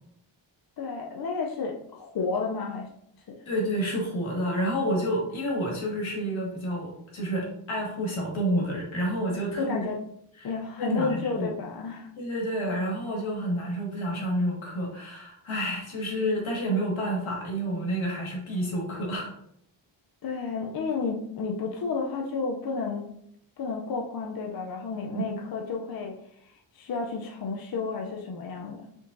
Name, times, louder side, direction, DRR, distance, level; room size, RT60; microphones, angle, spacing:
voice 1, 0.8-2.9 3.3-3.4 9.6-10.0 10.4-12.1 20.2-23.1 23.6-28.8, left 4 dB, 50° left, 1 dB, 0.5 m, -31 dB
voice 2, 3.4-9.8 10.4-10.5 10.8-11.5 12.2-19.3 25.1-25.2, equal, 80° left, -2 dB, 1.8 m, -29 dB
5.0 x 3.8 x 2.5 m, 0.72 s
wide cardioid pair, 165°, 47 cm